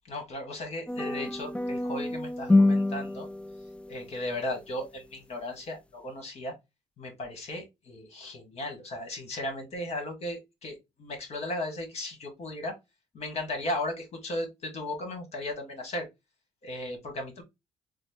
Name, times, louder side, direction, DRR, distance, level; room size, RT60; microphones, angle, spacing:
voice 1, 0.1-3.3 3.9-6.5 7.0-12.8 13.1-16.1 16.6-17.4, left 1 dB, 60° left, 1.6 m, -36 dB
sound 1, 0.9-4.2, left 2 dB, 10° left, 0.4 m, -27 dB
3.9 x 2.1 x 3.3 m
supercardioid pair, 60°, 12 cm